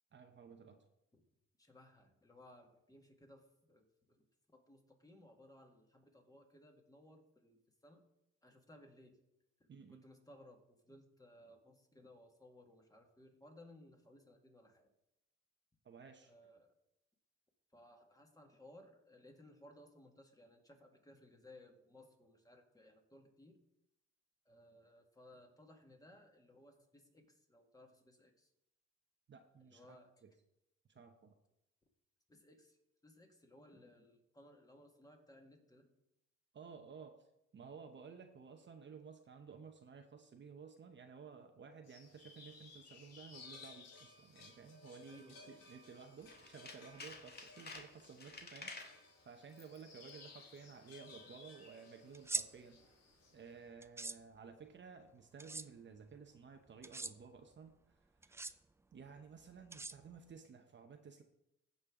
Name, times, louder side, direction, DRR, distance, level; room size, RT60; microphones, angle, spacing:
voice 1, 0.1-0.8 9.7-10.0 15.8-16.3 29.3-30.3 30.9-31.3 36.5-37.3 37.5-52.8 53.3-58.6 58.9-61.2, right 5 dB, 40° right, 5 dB, 0.9 m, -55 dB
voice 2, 1.6-4.2 4.5-8.0 8.4-9.2 9.9-14.9 16.2-16.7 17.7-23.6 24.5-28.5 29.6-30.1 32.3-32.8 33.0-35.9 45.1-45.6, left 1 dB, 10° left, 3 dB, 1.9 m, -61 dB
sound 1, 41.8-53.5, left 4 dB, 60° left, 2.4 m, -59 dB
Tools, 46.2-49.0 49.5-49.8 50.1-50.2, left 3 dB, 35° left, 1.7 m, -51 dB
sound 2, 52.1-52.5 53.8-54.2 55.4-55.7 56.8-57.1 58.2-58.5 59.7-60.3, right 3 dB, 10° right, 0.4 m, -41 dB
16.0 x 5.5 x 3.7 m, 0.85 s
cardioid pair, 90°, 29 cm